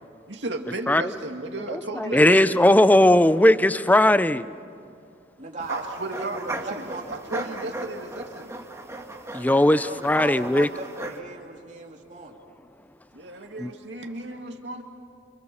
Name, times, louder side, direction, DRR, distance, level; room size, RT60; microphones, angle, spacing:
voice 1, 0.3-2.7 5.7-8.5 13.1-14.8, right 2 dB, 80° right, 2 dB, 2.4 m, -34 dB
voice 2, 1.7-4.5 9.3-10.7 13.6-13.7, left 1 dB, 10° left, 14 dB, 0.6 m, -18 dB
voice 3, 5.4-7.9 9.7-12.4, right 2 dB, 45° right, 0 dB, 3.0 m, -38 dB
sound 1, 5.6-11.2, right 1 dB, 15° right, 1.9 m, -37 dB
29.5 x 27.0 x 7.2 m, 2.3 s
head